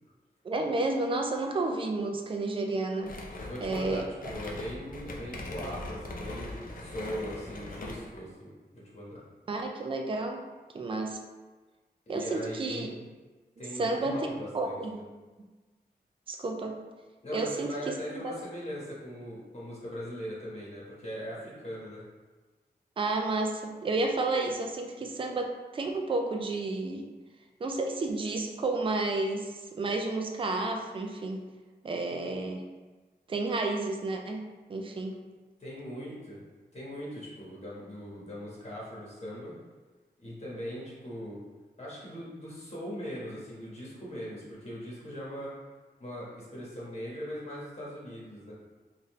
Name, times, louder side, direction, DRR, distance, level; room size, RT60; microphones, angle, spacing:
voice 1, 0.4-3.1 3.6-4.1 9.5-10.4 10.7-11.2 12.1-12.9 13.8-14.2 14.5-15.0 16.3-16.7 17.3-17.9 18.2-18.3 23.0-27.0 27.6-31.4 31.8-32.6 33.3-34.4 34.7-35.2, right 2 dB, 30° right, 2 dB, 0.4 m, -31 dB
sound 1, 3.0-8.2, left 2 dB, 55° left, 0.5 m, -40 dB
voice 2, 3.4-8.5 8.9-9.2 12.1-13.0 13.6-15.0 17.2-22.0 35.6-36.4 36.7-39.5 40.2-41.4 41.8-45.5 46.0-48.5, equal, 40° left, -7 dB, 1.4 m, -40 dB
4.0 x 2.6 x 3.1 m, 1.3 s
wide cardioid pair, 115°, 17 cm